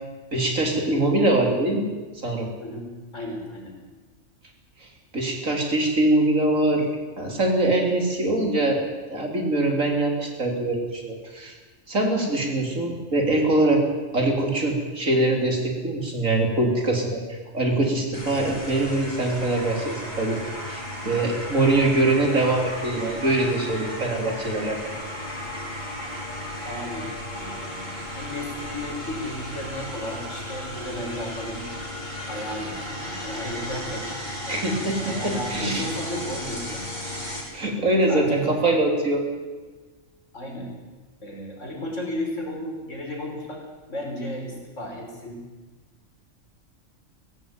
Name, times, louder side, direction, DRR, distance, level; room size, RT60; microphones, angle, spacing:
voice 1, 0.3-1.8 2.2-2.5 4.8-4.9 5.1-6.9 7.2-11.5 11.9-13.8 14.1-20.4 20.7-24.8 34.5-35.8 37.5-39.3, right 2 dB, 75° right, 2 dB, 4.2 m, -23 dB
voice 2, 2.6-3.7 26.6-31.7 32.3-34.1 34.4-36.9 38.1-38.8 40.3-40.7 41.2-45.4, left 1 dB, 65° left, 0 dB, 5.4 m, -34 dB
sound 1, 18.1-37.4, left 1 dB, 35° left, 5.3 m, -34 dB
19.0 x 16.0 x 9.2 m, 1.3 s
omnidirectional pair, 1.4 m